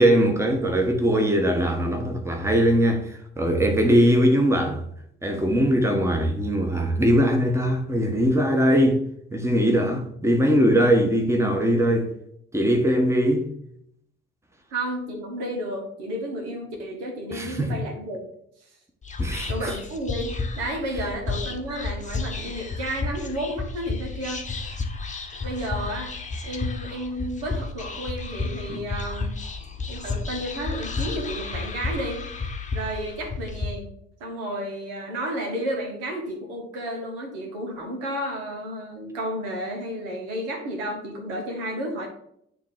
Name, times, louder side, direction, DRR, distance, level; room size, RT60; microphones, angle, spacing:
voice 1, 0.0-4.8 5.2-9.0 9.3-12.1 12.5-13.4 17.3-17.8 19.2-19.7 28.7-28.8, equal, 10° right, 1.3 m, -21 dB
voice 2, 14.7-18.3 19.5-24.4 25.4-26.1 26.4-29.3 29.9-32.2 32.7-33.9 34.2-42.1, right 1 dB, 70° right, 1.7 m, -32 dB
Whispering, 19.0-33.7, left 3 dB, 25° left, 1.1 m, -32 dB
9.1 x 3.1 x 4.8 m
figure-of-eight pair, 50°, 32 cm